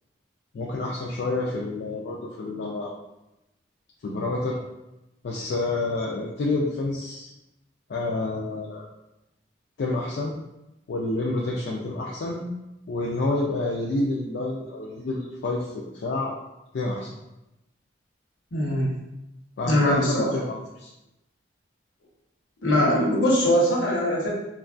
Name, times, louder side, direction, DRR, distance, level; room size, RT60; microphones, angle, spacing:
voice 1, 0.5-2.9 4.0-4.6 5.2-7.3 7.9-8.8 9.8-10.3 10.9-12.4 12.9-16.3 16.7-17.1 19.6-20.0 20.3-20.9, left 2 dB, 65° left, -3 dB, 0.3 m, -28 dB
voice 2, 18.5-18.9 19.7-20.3 22.6-24.3, equal, 85° left, -3 dB, 0.9 m, -21 dB
2.9 x 2.3 x 2.4 m, 0.93 s
head